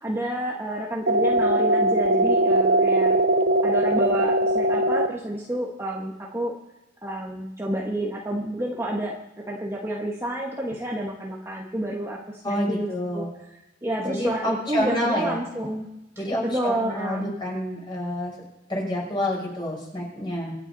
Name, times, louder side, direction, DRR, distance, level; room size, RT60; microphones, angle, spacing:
voice 1, 0.0-3.2 3.6-6.5 7.0-9.2 9.5-13.2 13.5-15.9 16.1-17.3, right 1 dB, 15° right, -2 dB, 1.4 m, -29 dB
sound 1, 1.1-5.1, right 1 dB, 55° right, 0.6 m, -20 dB
voice 2, 12.4-13.3 14.0-15.4 16.2-18.3 18.7-20.6, left 1 dB, 25° left, -3 dB, 5.6 m, -28 dB
25.0 x 8.4 x 4.1 m, 0.98 s
head